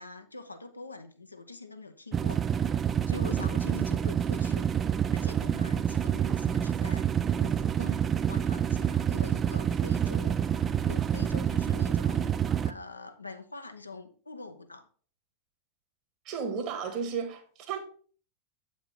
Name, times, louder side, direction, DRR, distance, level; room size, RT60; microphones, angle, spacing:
voice 1, 0.0-2.5 3.0-4.7 5.1-14.9, left 3 dB, 80° left, 0.7 m, -44 dB
sound 1, 2.1-12.7, right 8 dB, 25° right, 0.4 m, -27 dB
voice 2, 16.2-17.8, right 6 dB, 40° right, 1.5 m, -33 dB
7.8 x 5.1 x 3.6 m
figure-of-eight pair, 90°, 0 cm